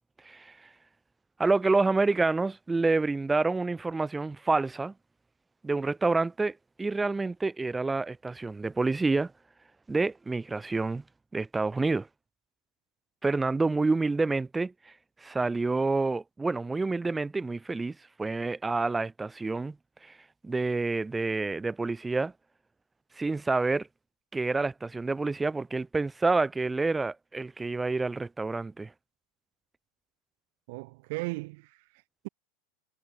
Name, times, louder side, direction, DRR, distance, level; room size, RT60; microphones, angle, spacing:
voice 1, 0.2-0.6 1.4-4.9 5.6-9.3 9.9-11.0 11.3-12.1 13.2-14.7 15.2-19.8 20.0-20.1 20.4-22.3 23.2-23.9 24.3-28.9, right 3 dB, 10° right, 1.8 m, -28 dB
voice 2, 30.7-32.3, right 27 dB, 65° right, 2.3 m, -37 dB
hypercardioid pair, 105°, 0 cm